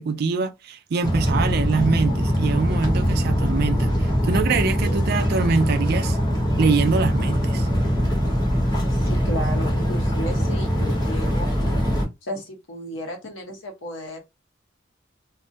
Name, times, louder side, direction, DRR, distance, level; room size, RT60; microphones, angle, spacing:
voice 1, 0.0-6.2 6.6-7.7, right 4 dB, 55° right, 0.3 m, -24 dB
sound 1, 1.0-12.0, equal, 20° left, 0.9 m, -22 dB
voice 2, 8.9-11.6 12.2-14.2, equal, 70° left, 0.8 m, -34 dB
2.3 x 2.1 x 2.6 m
head